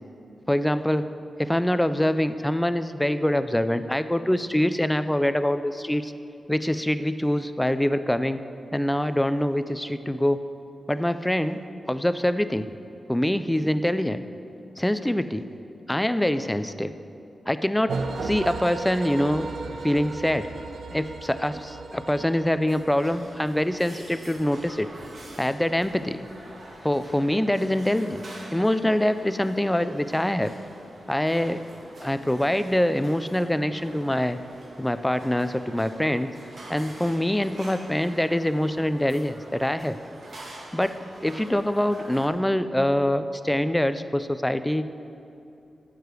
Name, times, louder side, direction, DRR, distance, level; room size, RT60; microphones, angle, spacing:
voice 1, 0.5-1.1 1.4-6.1 6.5-8.4 8.7-10.4 10.9-11.6 11.9-12.8 13.1-14.2 14.8-15.4 15.9-16.9 17.5-19.5 19.8-20.5 20.9-24.9 25.4-26.3 26.8-28.2 28.5-30.5 31.1-31.6 32.0-34.4 34.8-36.3 36.7-40.0 40.7-44.9, left 1 dB, 5° left, 11 dB, 0.4 m, -24 dB
sound 1, 17.9-23.9, right 3 dB, 75° right, 0.7 m, -35 dB
sound 2, 22.7-42.3, right 1 dB, 50° right, 1.5 m, -45 dB
12.5 x 4.9 x 8.1 m, 2.8 s
wide cardioid pair, 115°, 0 cm